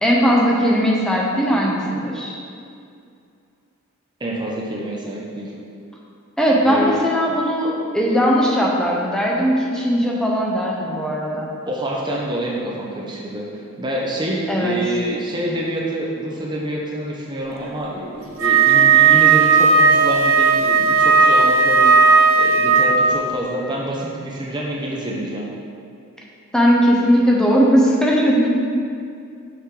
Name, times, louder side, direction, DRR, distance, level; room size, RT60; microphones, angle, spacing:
voice 1, 0.0-2.3 6.4-11.5 14.5-14.8 26.5-28.5, equal, 5° left, -3 dB, 0.9 m, -18 dB
voice 2, 4.2-5.5 6.7-7.0 11.6-25.5, right 1 dB, 20° right, -3 dB, 0.8 m, -27 dB
Wind instrument woodwind instrument, 18.4-23.1, right 5 dB, 60° right, 0.7 m, -14 dB
6.3 x 6.0 x 4.8 m, 2.4 s
head